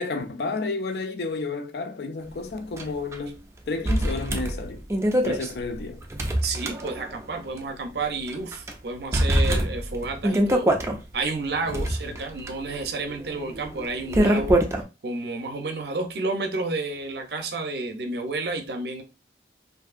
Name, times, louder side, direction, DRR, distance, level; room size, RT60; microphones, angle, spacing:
voice 1, 0.0-4.8 5.2-6.0 11.7-12.2, left 3 dB, 60° left, 0.4 m, -31 dB
sound 1, 2.8-2.9 3.1-3.2 3.9-7.3 7.6-7.7 8.3-8.7 9.1-11.0 11.5-14.8, right 1 dB, 15° right, 0.3 m, -24 dB
voice 2, 6.4-10.7 11.1-14.6 15.0-19.0, right 3 dB, 60° right, 0.6 m, -30 dB
2.7 x 2.6 x 2.4 m
head